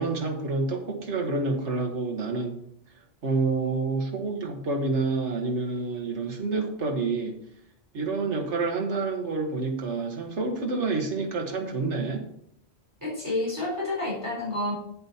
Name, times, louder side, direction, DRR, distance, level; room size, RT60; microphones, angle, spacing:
voice 1, 0.0-2.6 3.2-7.3 7.9-12.3, right 3 dB, 70° right, 2 dB, 1.8 m, -28 dB
voice 2, 13.0-14.7, left 2 dB, 15° right, -6 dB, 3.9 m, -29 dB
8.6 x 7.8 x 4.3 m, 0.69 s
omnidirectional pair, 1.2 m